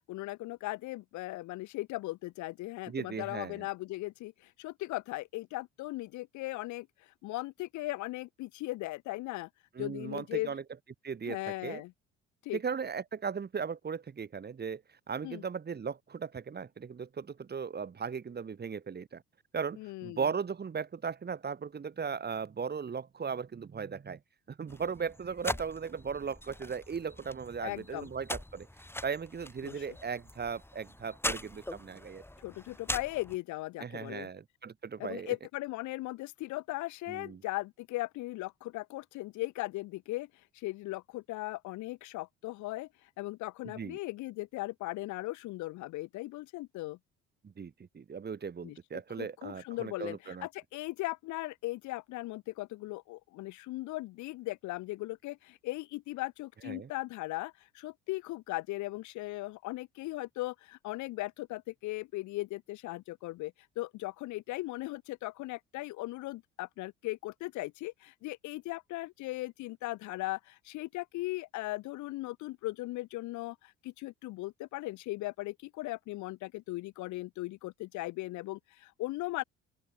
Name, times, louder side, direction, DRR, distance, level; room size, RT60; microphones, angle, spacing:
voice 1, 0.1-6.9 7.2-9.5 9.8-10.5 11.3-11.9 12.4-12.6 15.2-15.4 19.8-20.2 27.6-28.1 29.6-29.8 32.4-34.3 35.0-40.3 40.5-42.9 43.2-47.0 48.6-48.8 49.2-79.4, left 19 dB, 65° left, 2.2 m, -38 dB
voice 2, 2.9-3.7 9.7-10.6 11.0-11.4 11.6-11.8 12.5-14.8 15.1-19.2 19.5-24.2 24.5-28.7 29.0-32.2 33.8-35.3 37.1-37.4 43.6-44.0 47.4-50.5 56.6-56.9, right 6 dB, 30° right, 1.7 m, -37 dB
sound 1, 24.7-33.4, left 1 dB, 5° left, 4.2 m, -41 dB
open air
hypercardioid pair, 60°, 31 cm